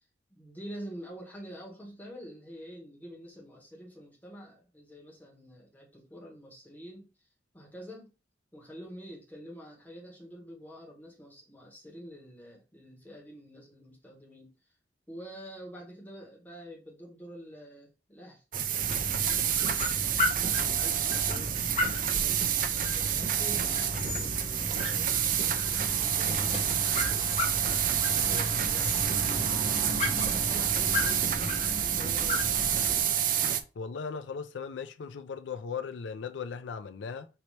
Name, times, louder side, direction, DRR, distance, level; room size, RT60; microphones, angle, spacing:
voice 1, 0.3-7.1 7.5-8.1 8.5-14.5 15.1-18.4 18.9-21.7 22.0-27.8 28.2-32.5, equal, 10° left, 1.4 m, -47 dB
sound 1, 18.5-33.6, right 9 dB, 50° right, 0.5 m, -28 dB
sound 2, 18.8-33.0, left 1 dB, 40° left, 1.2 m, -34 dB
voice 2, 33.8-37.3, left 6 dB, 90° left, 0.4 m, -37 dB
5.5 x 2.9 x 3.2 m
head